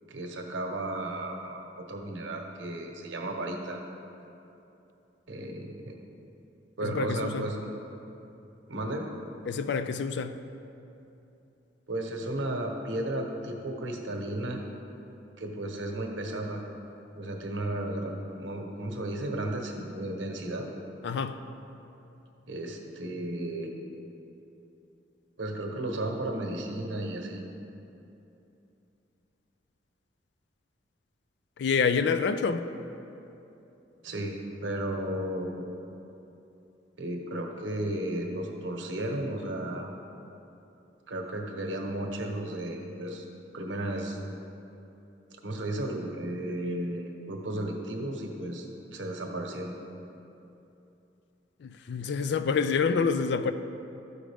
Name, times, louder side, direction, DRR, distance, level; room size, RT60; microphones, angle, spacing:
voice 1, 0.1-1.6 1.9-3.8 5.3-6.0 6.8-7.7 8.7-9.0 11.9-14.6 15.4-16.6 17.1-18.1 18.4-20.7 22.5-23.7 25.4-27.4 34.0-34.4 34.6-35.7 37.0-39.9 41.1-43.3 43.5-44.2 45.4-49.7, right 1 dB, 85° right, 2 dB, 1.0 m, -34 dB
voice 2, 6.8-7.5 9.5-10.4 21.0-21.4 31.6-32.6 51.6-53.5, left 5 dB, 65° left, 11 dB, 0.4 m, -27 dB
12.5 x 5.0 x 3.4 m, 2.9 s
head